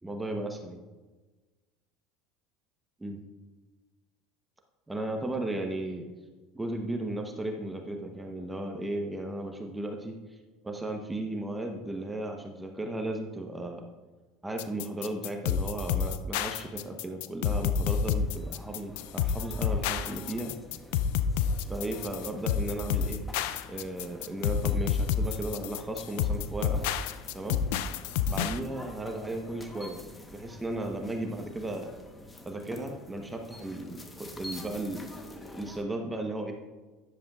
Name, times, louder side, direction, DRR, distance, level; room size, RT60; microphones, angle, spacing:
voice 1, 0.0-0.8 3.0-3.2 4.9-6.0 6.5-10.1 10.6-13.8 14.4-20.5 21.7-23.2 23.7-26.9 27.3-27.6 28.3-30.0 30.3-32.0 32.5-35.1 35.5-36.5, right 1 dB, 10° right, 3 dB, 0.9 m, -35 dB
sound 1, 14.6-28.6, left 7 dB, 75° left, 0.4 m, -29 dB
sound 2, 18.2-35.8, left 1 dB, 15° left, 1.0 m, -48 dB
10.5 x 6.9 x 2.4 m, 1.2 s
supercardioid pair, 95°, 0 cm